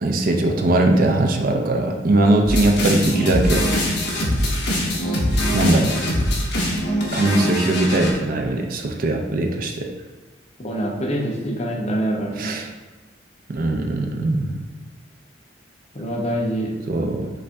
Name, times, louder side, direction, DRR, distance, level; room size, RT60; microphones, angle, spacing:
voice 1, 0.0-3.7 5.5-6.0 7.1-9.8 12.4-12.7 13.5-14.6 16.9-17.3, right 2 dB, 50° right, 3 dB, 0.5 m, -20 dB
sound 1, 2.5-8.1, equal, 65° left, 1.1 m, -22 dB
voice 2, 10.6-12.6 15.9-16.7, right 1 dB, 35° left, -1 dB, 0.7 m, -25 dB
5.4 x 2.6 x 3.4 m, 1.3 s
head